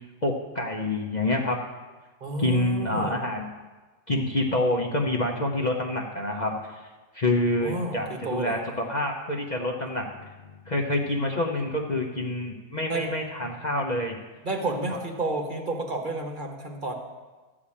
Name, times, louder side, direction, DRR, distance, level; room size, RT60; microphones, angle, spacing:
voice 1, 0.2-1.6 2.4-3.5 4.1-6.5 7.1-14.2, left 1 dB, 35° left, 0 dB, 0.8 m, -27 dB
voice 2, 2.2-3.2 7.6-8.6 12.9-13.1 14.4-16.9, right 2 dB, 35° right, 2 dB, 1.1 m, -31 dB
13.0 x 5.0 x 8.6 m, 1.3 s
omnidirectional pair, 1.8 m